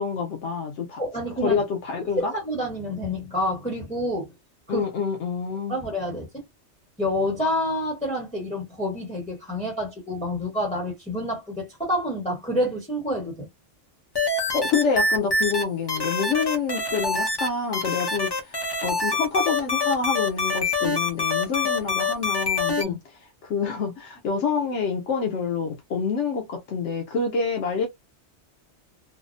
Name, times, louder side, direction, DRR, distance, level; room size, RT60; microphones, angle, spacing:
voice 1, 0.0-1.0 1.4-2.3 4.7-5.8 14.5-27.9, left 5 dB, 80° left, 1.0 m, -27 dB
voice 2, 1.0-1.6 2.2-4.3 4.7-4.9 5.7-6.4 7.0-13.5 22.8-23.0, equal, 5° left, 1.0 m, -28 dB
sound 1, 14.2-15.6 15.9-17.5 17.7-22.8, left 3 dB, 25° left, 0.6 m, -25 dB
3.3 x 2.0 x 2.5 m
omnidirectional pair, 1.2 m